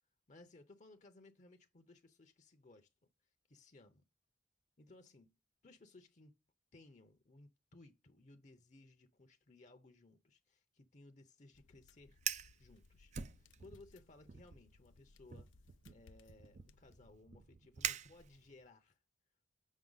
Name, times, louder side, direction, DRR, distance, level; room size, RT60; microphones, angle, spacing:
voice 1, 0.3-2.9 3.5-4.0 4.8-5.3 5.6-6.4 6.7-12.2 12.6-15.5 15.9-19.0, left 2 dB, 40° left, 0.7 m, -61 dB
sound 1, 11.5-17.1, left 3 dB, 85° left, 0.6 m, -66 dB
Fire, 12.1-12.6 13.1-13.9 14.3-14.6 15.3-18.7, right 9 dB, 40° right, 0.4 m, -44 dB
7.3 x 5.7 x 3.9 m
head